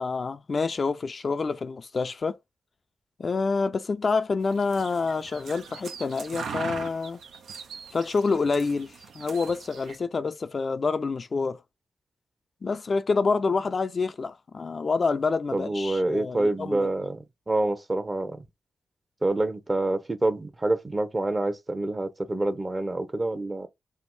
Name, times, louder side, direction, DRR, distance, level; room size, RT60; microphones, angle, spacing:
voice 1, 0.0-2.4 3.2-7.2 7.9-11.6 12.6-16.9, left 4 dB, 55° left, 0.4 m, -27 dB
sound 1, 4.4-10.0, right 6 dB, 80° right, 0.5 m, -41 dB
voice 2, 15.5-18.4 19.2-23.7, right 2 dB, 30° right, 0.8 m, -27 dB
3.4 x 2.1 x 2.5 m
supercardioid pair, 40°, 0 cm